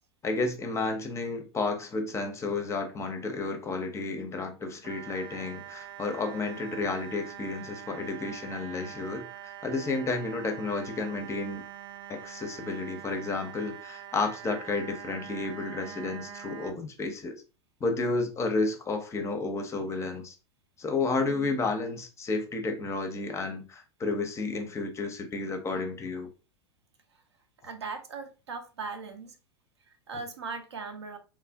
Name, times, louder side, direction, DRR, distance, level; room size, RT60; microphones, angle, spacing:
voice 1, 0.2-11.6 12.1-17.4 17.8-20.4 20.8-26.3, left 3 dB, 20° left, 0.5 m, -31 dB
sound 1, 4.8-16.7, right 11 dB, 35° right, 0.4 m, -44 dB
voice 2, 27.6-29.4 29.9-31.2, right 4 dB, 80° right, 0.6 m, -39 dB
3.1 x 2.4 x 2.2 m
figure-of-eight pair, 90°, 14 cm